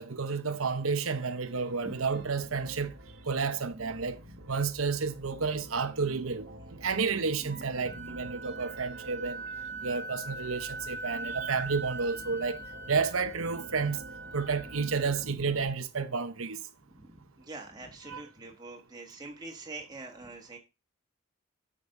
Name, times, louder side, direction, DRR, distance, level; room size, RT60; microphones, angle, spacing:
voice 1, 0.0-2.9 3.3-4.2 4.5-6.5 6.8-9.4 9.8-14.0 14.3-16.6 18.1-18.2, right 5 dB, 85° right, 0.9 m, -31 dB
sound 1, 1.2-15.7, right 1 dB, 70° right, 1.6 m, -48 dB
Wind instrument woodwind instrument, 7.5-15.2, right 3 dB, 40° right, 1.7 m, -42 dB
voice 2, 16.9-20.6, right 2 dB, 20° right, 1.5 m, -44 dB
8.5 x 5.2 x 5.3 m
head